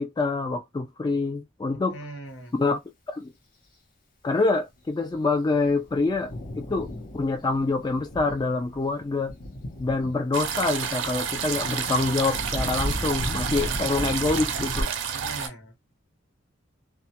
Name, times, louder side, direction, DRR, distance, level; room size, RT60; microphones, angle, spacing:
voice 1, 0.0-2.0 2.6-2.8 3.1-3.3 4.2-9.3 9.8-14.9, left 3 dB, 20° left, 0.3 m, -26 dB
voice 2, 1.9-2.5 15.1-15.7, right 1 dB, 90° left, 1.0 m, -40 dB
Thunder, 5.1-14.8, equal, 50° left, 0.8 m, -36 dB
sound 1, 10.3-15.5, right 7 dB, 75° right, 0.5 m, -30 dB
2.2 x 2.1 x 2.8 m
head